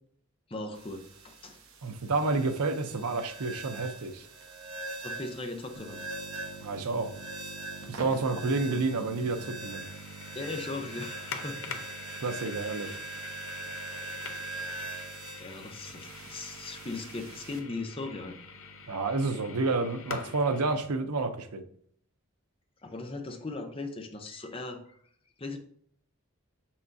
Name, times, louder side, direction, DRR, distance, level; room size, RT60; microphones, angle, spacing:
voice 1, 0.5-1.6 5.0-6.0 10.3-11.8 12.8-13.0 15.4-18.4 22.8-25.0 25.4-25.6, left 3 dB, 25° left, 6 dB, 0.6 m, -38 dB
sound 1, 0.7-17.6, right 2 dB, 65° right, 1.0 m, -42 dB
voice 2, 1.8-4.3 6.6-7.1 7.9-9.8 12.2-12.9 18.9-21.6, right 3 dB, 90° right, 8 dB, 0.6 m, -29 dB
sound 2, 5.7-20.9, left 3 dB, 60° left, 0.7 m, -45 dB
6.3 x 5.7 x 2.7 m, 0.63 s
head